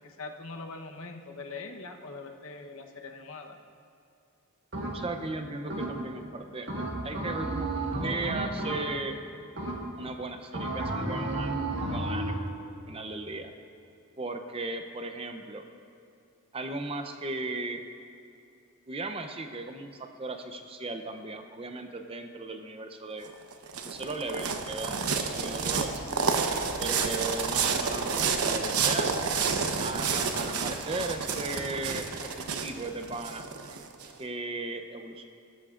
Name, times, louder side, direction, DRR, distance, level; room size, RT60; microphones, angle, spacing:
voice 1, 0.0-3.6, left 3 dB, 65° left, 4 dB, 0.9 m, -42 dB
sound 1, 4.7-5.2 5.7-6.2 6.7-9.1 9.6-10.1 10.5-12.5, right 2 dB, 55° right, 1.6 m, -32 dB
voice 2, 4.9-7.7 8.0-9.2 10.0-12.4 12.9-13.5 14.2-15.6 16.5-17.8 18.9-23.3 23.8-26.0 26.8-29.1 29.8-33.5 34.2-35.3, right 2 dB, 25° right, 6 dB, 0.6 m, -36 dB
sound 2, 23.2-34.1, right 5 dB, 85° right, 0.9 m, -29 dB
20.0 x 13.0 x 2.5 m, 2.6 s
head